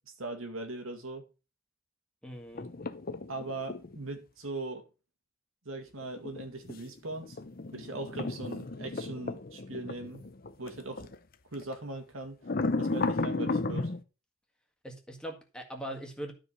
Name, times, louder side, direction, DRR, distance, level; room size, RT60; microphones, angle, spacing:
voice 1, 0.2-1.2 3.3-4.8 5.7-7.4 7.7-10.2 10.6-11.1 11.5-12.4 12.8-13.9, right 2 dB, 85° right, 2.1 m, -40 dB
voice 2, 2.2-2.7 14.8-16.3, right 1 dB, 5° left, 1.8 m, -41 dB
sound 1, 2.6-4.0 6.0-11.2 11.5-11.7 12.4-14.0, left 3 dB, 45° left, 0.7 m, -34 dB
12.5 x 5.0 x 5.6 m
head